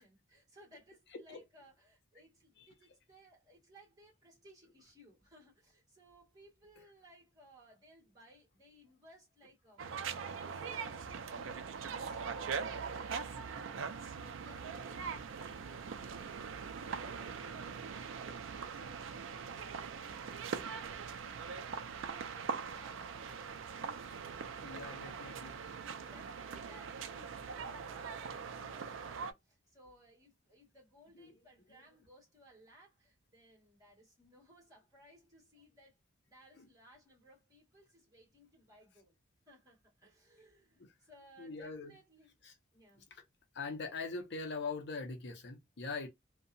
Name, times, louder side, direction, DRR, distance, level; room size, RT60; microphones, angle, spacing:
voice 1, 0.0-9.8 10.2-13.9 14.4-19.7 20.0-36.0 36.3-39.2 39.5-42.4 42.7-43.1, equal, 20° right, 1.5 m, -62 dB
sound 1, 9.8-29.3, right 6 dB, 85° right, 0.4 m, -42 dB
voice 2, 24.6-25.6 31.2-31.3 31.7-31.8 36.6-36.7 41.4-41.9 42.4-42.5 43.1-43.2 43.5-46.1, left 4 dB, 60° left, 0.6 m, -42 dB
2.7 x 2.1 x 2.5 m
head